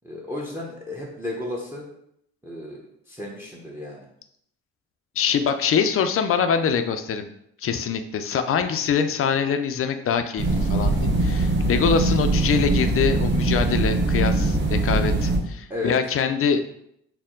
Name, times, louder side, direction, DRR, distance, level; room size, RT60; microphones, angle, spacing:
voice 1, 0.0-1.8 2.4-2.8 3.1-4.1 15.7-15.9, left 1 dB, 10° right, -2 dB, 0.7 m, -33 dB
voice 2, 5.2-7.3 7.6-16.6, left 6 dB, 50° left, 8 dB, 0.4 m, -24 dB
sound 1, 10.4-15.4, right 2 dB, 35° right, 1.0 m, -22 dB
4.4 x 2.1 x 3.7 m, 0.74 s
cardioid pair, 90°, 30 cm